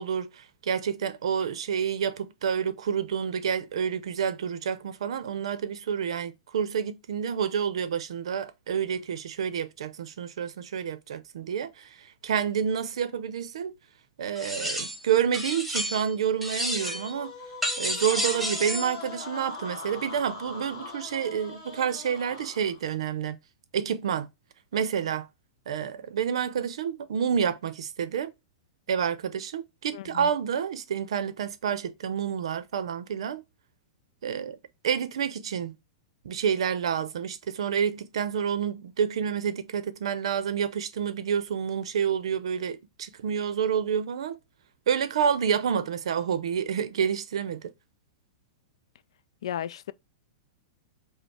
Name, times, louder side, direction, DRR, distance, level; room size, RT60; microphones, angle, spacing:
voice 1, 0.0-13.7 14.2-17.3 17.8-23.4 23.7-24.3 24.7-25.3 25.7-28.3 28.9-33.4 34.2-34.6 34.8-35.8 36.2-44.4 44.9-47.7, right 7 dB, 80° right, 0.6 m, -29 dB
sound 1, 14.4-15.0 15.3-16.1 16.4-17.1 17.6-18.9, equal, ahead, 0.6 m, -31 dB
sound 2, 16.6-23.0, left 3 dB, 30° left, 1.4 m, -42 dB
voice 2, 29.9-30.3 49.4-49.9, left 10 dB, 75° left, 0.3 m, -34 dB
5.1 x 2.1 x 4.6 m
supercardioid pair, 170°, 3 cm